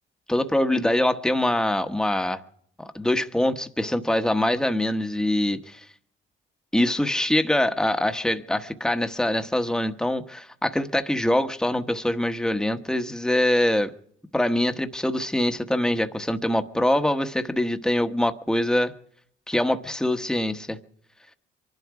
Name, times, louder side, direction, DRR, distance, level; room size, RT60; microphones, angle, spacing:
voice 1, 0.3-2.4 2.8-5.8 6.7-13.9 14.3-18.9 19.5-20.8, left 1 dB, 5° left, 1.2 m, -24 dB
24.5 x 12.0 x 4.8 m
cardioid pair, 90°, 20 cm